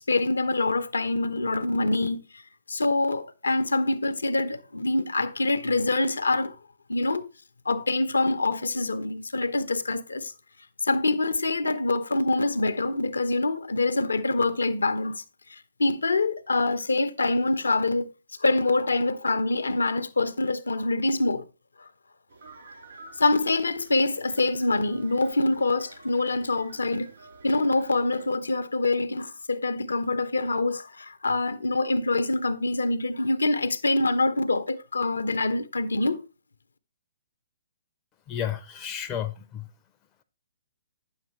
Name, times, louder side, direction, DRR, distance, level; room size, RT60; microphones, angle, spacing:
voice 1, 0.0-2.4 2.7-6.5 6.9-7.3 7.7-10.3 10.8-15.2 15.5-18.1 18.4-21.5 21.8-21.9 23.2-27.1 27.4-36.2, left 2 dB, 75° left, 0.7 m, -25 dB
sound 1, 22.3-28.3, right 3 dB, 60° right, 3.8 m, -50 dB
voice 2, 38.3-39.7, left 9 dB, 20° left, 0.6 m, -32 dB
9.2 x 7.2 x 3.0 m
figure-of-eight pair, 125°, 0 cm